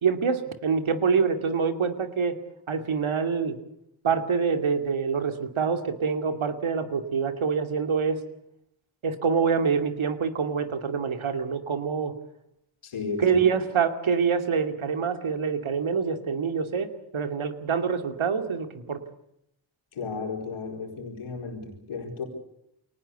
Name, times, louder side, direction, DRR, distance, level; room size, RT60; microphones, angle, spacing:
voice 1, 0.0-2.4 2.7-3.6 4.0-8.2 9.0-12.1 13.2-19.0, right 6 dB, 75° right, 8 dB, 2.6 m, -26 dB
voice 2, 12.8-13.4 19.9-22.2, left 4 dB, 90° left, 2 dB, 4.7 m, -34 dB
23.5 x 19.0 x 8.2 m, 0.76 s
cardioid pair, 40°, 49 cm